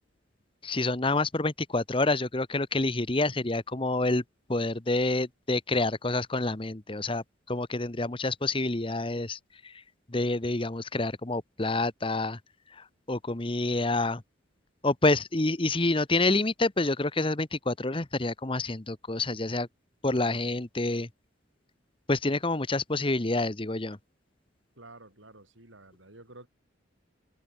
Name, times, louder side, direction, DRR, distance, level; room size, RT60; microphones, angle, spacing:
voice 1, 0.6-4.2 4.5-9.4 9.6-9.7 10.1-12.4 13.1-14.2 14.8-19.7 20.0-21.1 22.1-24.0, left 2 dB, 25° left, 1.1 m, -28 dB
voice 2, 24.7-26.5, right 2 dB, 80° right, 8.0 m, -50 dB
open air
head